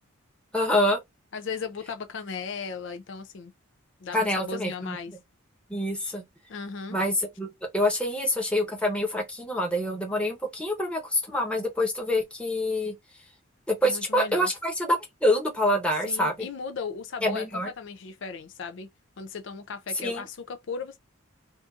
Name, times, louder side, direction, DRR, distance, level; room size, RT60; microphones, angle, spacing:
voice 1, 0.5-1.0 4.1-5.0 5.7-6.2 6.9-12.9 13.7-16.5 17.2-17.7 19.9-20.2, left 1 dB, 5° left, 0.9 m, -26 dB
voice 2, 1.3-3.5 4.0-5.1 6.5-7.0 13.8-14.5 16.1-18.9 19.2-21.0, left 5 dB, 55° left, 0.4 m, -36 dB
2.7 x 2.5 x 3.5 m
head